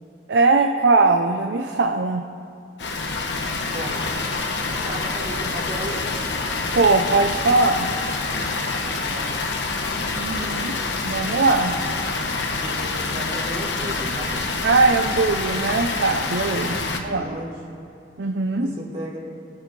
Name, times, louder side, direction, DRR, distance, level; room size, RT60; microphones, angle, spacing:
voice 1, 0.3-2.2 6.7-7.9 10.1-10.7 11.0-11.7 14.6-17.3 18.2-18.7, right 3 dB, 90° right, 5 dB, 0.6 m, -20 dB
Water, 2.8-17.0, left 3 dB, 85° left, 1.1 m, -27 dB
voice 2, 3.7-4.1 4.9-6.1 8.8-9.8 10.2-10.7 12.6-14.3 16.6-17.5 18.6-19.2, right 1 dB, 35° right, -6 dB, 3.2 m, -35 dB
23.0 x 8.7 x 3.3 m, 2.5 s
head